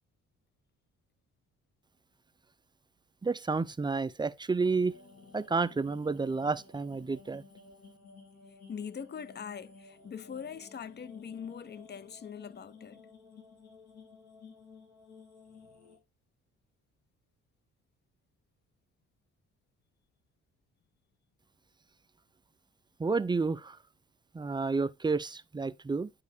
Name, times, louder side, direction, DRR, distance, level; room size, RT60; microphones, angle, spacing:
voice 1, 3.2-4.9 5.3-7.4 23.0-23.8 24.3-26.1, right 4 dB, 15° right, 0.4 m, -30 dB
sound 1, 4.6-16.0, left 4 dB, 60° left, 3.0 m, -55 dB
voice 2, 8.7-13.1, left 7 dB, 35° left, 0.7 m, -42 dB
9.3 x 4.7 x 3.4 m
cardioid pair, 90°, 30 cm